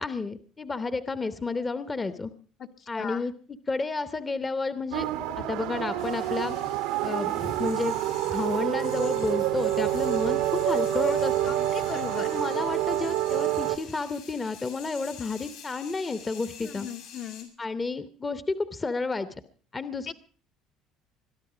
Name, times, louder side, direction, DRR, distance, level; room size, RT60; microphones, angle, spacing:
voice 1, 0.0-2.3 2.9-3.3 3.7-5.1 5.4-6.6 7.0-8.0 8.3-11.5 12.2-16.9 17.6-19.3 19.7-20.1, left 3 dB, 20° left, 12 dB, 0.8 m, -31 dB
sound 1, 4.9-13.8, right 13 dB, 85° right, 1.2 m, -27 dB
sound 2, 6.0-17.4, left 8 dB, 85° left, 5.8 m, -47 dB
voice 2, 11.5-12.3 16.6-17.5 20.1-20.2, left 7 dB, 45° left, 5 dB, 1.0 m, -37 dB
22.5 x 12.0 x 4.9 m, 0.42 s
cardioid pair, 125°, 0 cm